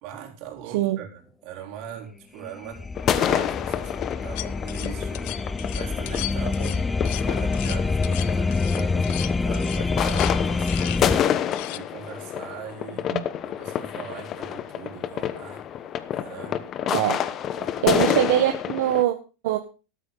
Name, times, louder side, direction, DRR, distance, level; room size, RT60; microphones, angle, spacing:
voice 1, 0.0-3.9 4.2-5.5 5.7-11.3 11.7-13.1 13.5-15.6 16.1-16.6 17.6-17.8, right 8 dB, 55° right, 4.0 m, -40 dB
sound 1, 2.4-11.2, left 4 dB, 10° left, 0.6 m, -26 dB
sound 2, 3.0-19.0, left 10 dB, 30° left, 1.0 m, -28 dB
sound 3, 4.4-11.1 11.5-11.8, left 18 dB, 60° left, 0.6 m, -36 dB
voice 2, 16.9-17.2 17.8-19.2 19.4-19.6, right 13 dB, 75° right, 1.2 m, -22 dB
13.0 x 12.5 x 3.9 m
supercardioid pair, 145°, 0 cm